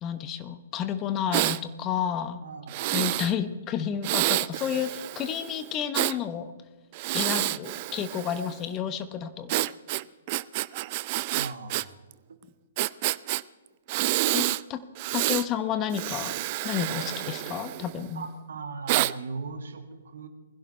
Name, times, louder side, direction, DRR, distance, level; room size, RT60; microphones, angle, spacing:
voice 1, 0.0-2.4 2.9-6.5 7.1-9.5 14.3-14.8 15.1-16.3 16.6-18.3, left 9 dB, 25° left, 11 dB, 1.0 m, -31 dB
Breathing, 1.3-1.6 2.7-3.3 4.0-6.2 6.9-8.6 9.5-11.8 12.1-12.2 12.8-13.4 13.9-14.6 15.0-15.5 15.9-18.1 18.9-19.1, right 18 dB, 40° right, 0.4 m, -28 dB
voice 2, 2.4-3.2 11.3-11.9 12.3-12.4 18.1-20.3, right 4 dB, 65° right, 7 dB, 2.0 m, -38 dB
21.0 x 16.0 x 3.3 m, 1.3 s
figure-of-eight pair, 120°, 0 cm